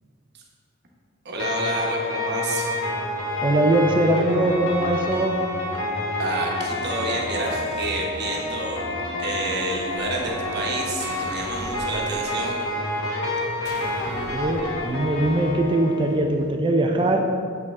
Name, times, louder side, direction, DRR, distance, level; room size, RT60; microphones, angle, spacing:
voice 1, 1.2-2.7 6.2-8.9 9.2-12.6, right 2 dB, 55° right, -1 dB, 1.0 m, -29 dB
sound 1, 1.4-16.1, left 1 dB, 70° left, 1.2 m, -28 dB
voice 2, 3.4-5.5 14.0-17.2, right 1 dB, 25° right, 3 dB, 0.4 m, -21 dB
sound 2, 9.9-10.7 11.0-12.6 13.6-15.0, left 1 dB, 55° left, 0.9 m, -42 dB
7.1 x 5.3 x 3.5 m, 2.2 s
head